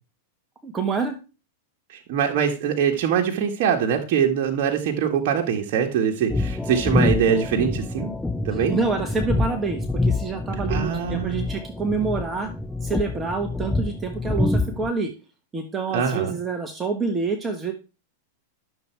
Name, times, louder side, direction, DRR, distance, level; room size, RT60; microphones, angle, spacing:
voice 1, 0.6-1.2 8.5-12.5 12.8-15.1 15.5-17.7, right 4 dB, 15° right, 5 dB, 1.4 m, -27 dB
voice 2, 1.9-8.1 8.5-8.8 10.7-11.5 15.9-16.4, right 7 dB, 50° right, 2 dB, 1.7 m, -23 dB
sound 1, 6.3-14.9, left 2 dB, 5° left, 0.6 m, -26 dB
12.0 x 7.0 x 4.6 m, 0.31 s
hypercardioid pair, 125°, 0 cm